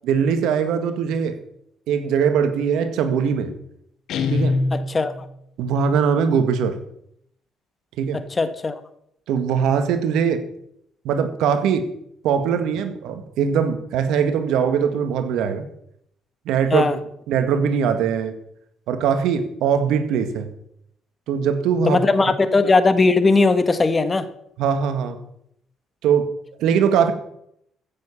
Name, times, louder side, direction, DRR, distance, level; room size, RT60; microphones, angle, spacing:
voice 1, 0.0-1.4 1.9-3.5 4.3-4.6 5.6-6.8 8.0-8.2 9.3-10.4 11.0-11.9 12.2-15.7 16.5-16.9 17.3-18.3 18.9-20.5 21.3-22.0 24.6-25.2 26.0-26.3 26.6-27.1, right 7 dB, 80° right, 9 dB, 1.8 m, -21 dB
Guitar, 4.1-5.4, left 3 dB, 75° left, 1.8 m, -23 dB
voice 2, 4.7-5.3 8.1-8.7 16.7-17.0 21.8-24.3, left 3 dB, 25° left, 12 dB, 1.5 m, -19 dB
15.0 x 7.4 x 7.4 m, 0.74 s
cardioid pair, 85°, 0 cm